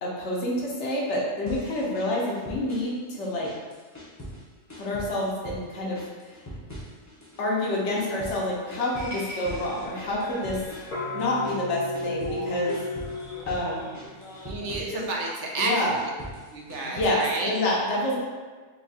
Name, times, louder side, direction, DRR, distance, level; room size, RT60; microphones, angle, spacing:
voice 1, 0.0-3.5 4.8-6.3 7.4-10.6 11.1-12.8 13.5-13.8 14.9-15.0 15.6-16.0 16.8-18.2, left 1 dB, 75° left, -3 dB, 1.1 m, -28 dB
sound 1, 1.5-3.0 3.2-4.4 4.7-5.6 6.0-7.4 7.7-12.4 12.7-13.7 13.9-15.3 15.7-17.4, equal, 20° left, 0.5 m, -42 dB
sound 2, 8.9-14.5, left 1 dB, 50° left, 0.8 m, -35 dB
voice 2, 14.4-15.9 16.5-17.5, right 2 dB, 75° right, -1 dB, 1.0 m, -30 dB
4.2 x 2.8 x 2.7 m, 1.4 s
omnidirectional pair, 1.2 m